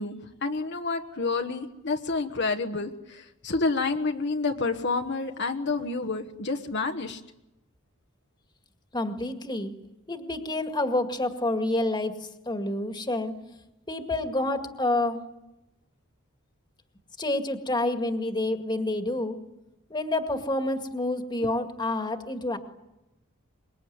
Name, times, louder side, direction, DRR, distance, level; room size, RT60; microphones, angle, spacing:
voice 1, 0.0-7.2, left 3 dB, 55° left, 4 dB, 1.3 m, -29 dB
voice 2, 8.9-9.7 10.1-13.3 13.9-15.2 17.2-19.4 19.9-22.6, left 2 dB, 20° left, 6 dB, 2.0 m, -28 dB
25.0 x 22.0 x 9.4 m, 0.94 s
head